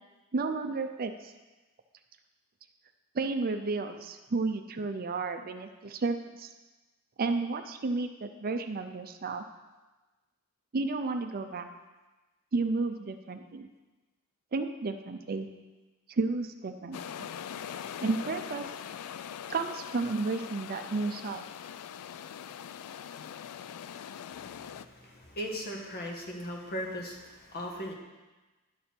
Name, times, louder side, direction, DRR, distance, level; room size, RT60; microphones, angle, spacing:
voice 1, 0.3-1.3 3.1-6.5 7.2-9.4 10.7-11.7 12.5-13.7 14.5-15.5 16.1-17.3 18.0-18.7 19.5-21.4, right 3 dB, 40° right, 7 dB, 0.5 m, -32 dB
sound 1, 16.9-24.9, left 8 dB, 80° left, 0.3 m, -42 dB
voice 2, 24.3-27.9, equal, 45° left, 0 dB, 1.4 m, -38 dB
10.0 x 6.8 x 4.4 m, 1.2 s
head